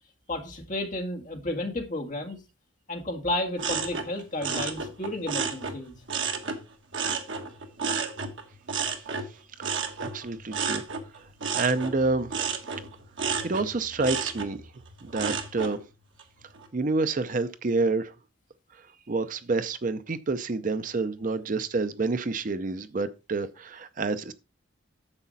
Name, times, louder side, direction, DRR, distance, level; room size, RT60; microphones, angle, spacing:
voice 1, 0.3-2.4 2.9-6.0, left 1 dB, 40° left, 1.8 m, -32 dB
sound 1, 3.6-6.6 6.9-15.8 16.2-16.7, right 5 dB, 65° right, 1.4 m, -32 dB
voice 2, 10.0-10.8 11.2-11.3 11.5-12.3 13.4-14.6 15.0-15.8 16.7-18.1 19.1-24.3, right 3 dB, 40° right, 0.5 m, -28 dB
9.8 x 7.2 x 4.0 m
head